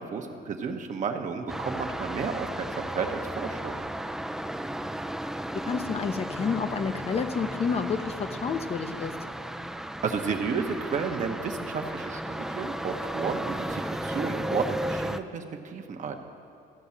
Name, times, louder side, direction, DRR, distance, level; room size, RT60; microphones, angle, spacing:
voice 1, 0.0-3.8 10.0-16.1, right 5 dB, 45° right, 4 dB, 0.9 m, -32 dB
sound 1, 1.5-15.2, right 1 dB, 5° right, 0.3 m, -34 dB
voice 2, 5.5-9.2, left 5 dB, 40° left, 8 dB, 0.6 m, -29 dB
13.5 x 5.3 x 7.2 m, 2.3 s
cardioid pair, 110°, 17 cm